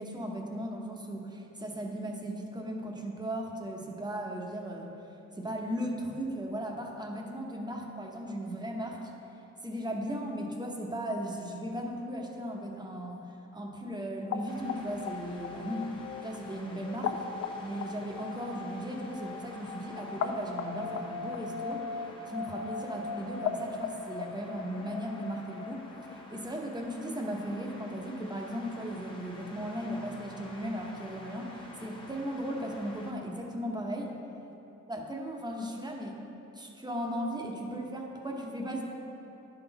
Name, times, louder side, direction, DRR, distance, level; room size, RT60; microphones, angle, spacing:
voice 1, 0.0-4.9 5.3-9.1 9.6-15.9 16.2-17.2 17.6-34.1 34.9-36.2 36.5-38.8, equal, 15° right, 1 dB, 0.9 m, -37 dB
sound 1, 14.2-26.4, left 5 dB, 55° left, 0.5 m, -38 dB
sound 2, 14.5-33.1, left 1 dB, 15° left, 1.1 m, -50 dB
10.0 x 4.0 x 4.0 m, 3.0 s
cardioid pair, 90°, 30 cm